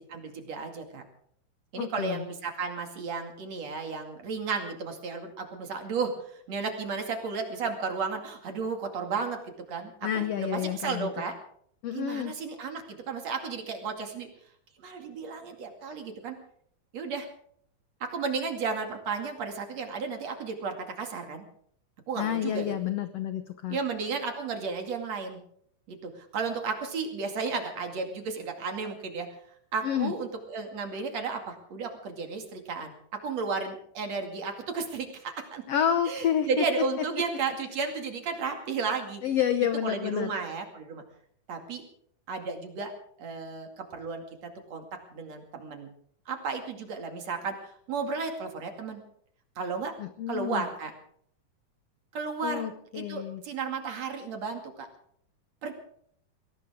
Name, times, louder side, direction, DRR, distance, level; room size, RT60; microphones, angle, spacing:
voice 1, 0.1-1.0 1.7-9.4 9.7-11.3 11.9-14.3 14.8-16.4 16.9-17.3 18.0-21.4 22.1-22.8 23.7-25.4 25.9-29.3 29.7-32.9 33.2-35.6 36.1-39.2 39.8-41.0 41.5-41.8 42.3-42.9 43.2-44.8 45.1-45.9 46.3-49.0 49.6-49.9 50.3-50.9 52.1-52.7 52.9-54.9 55.6-55.7, right 4 dB, 50° right, 4 dB, 3.3 m, -33 dB
voice 2, 1.7-2.3 10.0-11.1 11.8-12.3 22.2-23.8 29.8-30.1 35.7-36.6 39.2-40.3 50.0-50.6 52.4-53.4, left 9 dB, 70° left, 10 dB, 1.5 m, -29 dB
21.5 x 18.0 x 3.7 m, 0.64 s
omnidirectional pair, 4.0 m